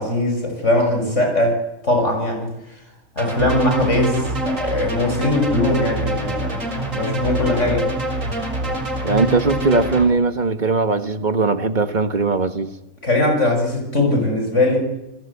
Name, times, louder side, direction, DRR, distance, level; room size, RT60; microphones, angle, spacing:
voice 1, 0.0-1.6 1.8-2.5 3.2-6.6 6.9-7.9 13.0-14.8, left 1 dB, 65° left, 3 dB, 6.8 m, -20 dB
sound 1, 3.2-10.0, right 1 dB, 80° right, 5.0 m, -25 dB
voice 2, 9.0-12.7, right 3 dB, 35° right, 9 dB, 1.6 m, -19 dB
29.0 x 21.0 x 8.6 m, 0.97 s
omnidirectional pair, 1.3 m